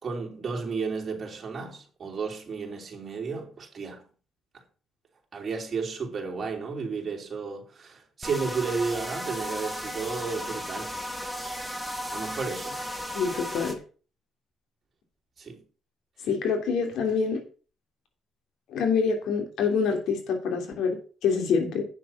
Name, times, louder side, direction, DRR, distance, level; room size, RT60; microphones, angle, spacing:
voice 1, 0.0-4.0 5.3-11.0 12.1-12.8 15.4-15.6, right 5 dB, 40° right, 3.5 m, -33 dB
sound 1, 8.2-13.8, equal, 5° left, 1.8 m, -35 dB
voice 2, 13.1-13.8 16.2-17.4 18.7-21.8, left 5 dB, 80° left, 3.1 m, -26 dB
9.0 x 7.1 x 6.0 m
cardioid pair, 90°, 0 cm